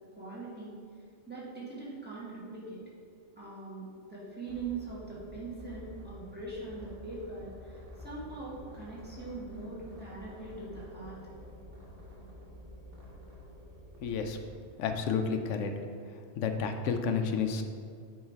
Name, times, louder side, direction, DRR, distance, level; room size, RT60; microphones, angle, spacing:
voice 1, 0.1-0.7 1.3-2.8 3.4-11.2, right 3 dB, 10° right, -8 dB, 1.6 m, -42 dB
sound 1, 4.4-14.6, equal, 55° right, 1.3 m, -49 dB
voice 2, 14.0-14.4 14.8-15.7 16.4-17.6, left 6 dB, 85° left, 6 dB, 0.9 m, -30 dB
8.7 x 3.2 x 4.5 m, 2.2 s
omnidirectional pair, 1.2 m